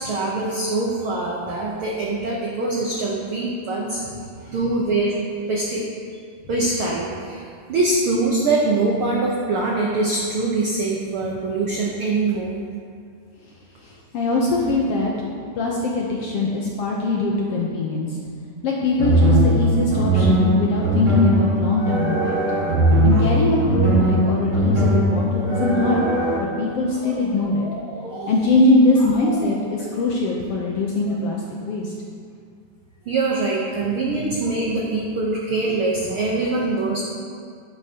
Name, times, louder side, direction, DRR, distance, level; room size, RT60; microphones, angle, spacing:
voice 1, 0.0-4.0 4.4-5.2 5.5-5.8 6.5-7.4 7.7-12.6 23.1-23.3 25.4-25.6 27.0-27.3 27.6-28.3 29.2-29.5 31.1-31.2 33.1-37.0, right 3 dB, 85° right, -3 dB, 1.1 m, -24 dB
voice 2, 13.8-15.1 15.5-18.2 18.6-22.4 23.0-26.0 26.4-27.7 28.3-31.9, left 2 dB, 80° left, -2 dB, 1.3 m, -21 dB
sound 1, 19.0-26.4, right 1 dB, 45° right, 2.5 m, -19 dB
11.0 x 10.5 x 2.9 m, 2.2 s
omnidirectional pair, 3.8 m